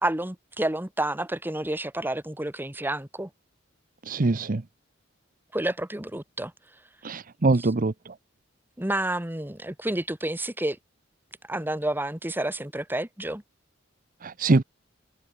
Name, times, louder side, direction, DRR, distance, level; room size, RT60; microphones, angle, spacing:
voice 1, 0.0-3.3 5.5-6.5 7.6-7.7 8.8-10.8 11.5-13.4, right 1 dB, 10° right, 1.5 m, -29 dB
voice 2, 4.1-4.6 7.0-7.9 14.2-14.6, right 3 dB, 45° right, 0.7 m, -23 dB
head